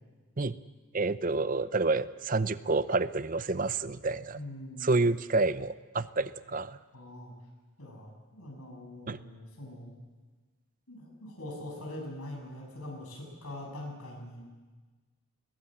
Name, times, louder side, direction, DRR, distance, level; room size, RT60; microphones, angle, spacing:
voice 1, 0.9-4.4 4.8-6.8 9.1-9.2, right 3 dB, 40° right, 14 dB, 0.6 m, -29 dB
voice 2, 4.3-4.9 6.9-7.3 7.8-9.9 10.9-14.4, left 1 dB, 90° left, 0 dB, 7.7 m, -43 dB
21.0 x 19.0 x 8.9 m, 1.3 s
head